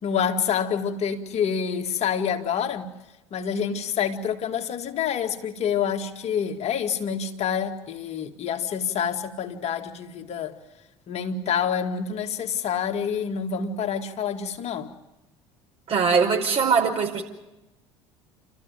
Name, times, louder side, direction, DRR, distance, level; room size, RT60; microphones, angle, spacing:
voice 1, 0.0-2.9 3.3-10.6 11.1-14.9, left 7 dB, 45° left, 5 dB, 2.1 m, -27 dB
voice 2, 15.9-17.2, right 5 dB, 40° right, 3 dB, 5.2 m, -21 dB
29.0 x 14.0 x 9.2 m, 1.0 s
hypercardioid pair, 65°, 15 cm